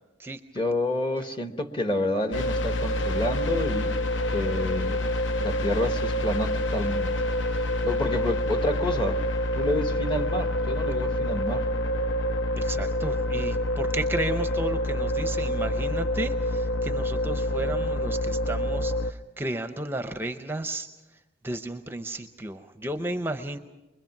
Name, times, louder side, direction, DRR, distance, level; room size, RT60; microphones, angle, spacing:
voice 1, 0.5-4.0 4.3-5.0 5.4-7.3 7.8-9.2 9.5-11.7, left 1 dB, 25° left, 7 dB, 1.1 m, -29 dB
sound 1, 2.3-19.1, left 1 dB, 75° left, 0.7 m, -27 dB
voice 2, 12.5-20.9 21.4-23.6, right 1 dB, 10° right, 8 dB, 0.6 m, -33 dB
24.5 x 21.5 x 5.9 m, 1.1 s
head